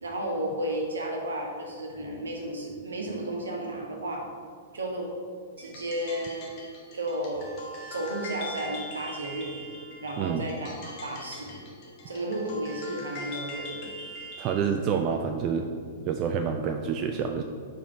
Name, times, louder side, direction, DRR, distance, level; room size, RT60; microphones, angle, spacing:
voice 1, 0.0-4.3 4.7-5.1 5.6-6.5 6.9-7.5 7.9-9.6 10.0-11.6 12.1-13.9, right 1 dB, 75° right, 0 dB, 1.4 m, -33 dB
sound 1, 5.6-14.6, left 1 dB, 40° left, 1.4 m, -42 dB
voice 2, 10.2-10.5 14.4-15.7 16.0-17.4, right 7 dB, 35° right, 5 dB, 0.4 m, -28 dB
5.0 x 4.9 x 6.0 m, 2.1 s
figure-of-eight pair, 105°, 0 cm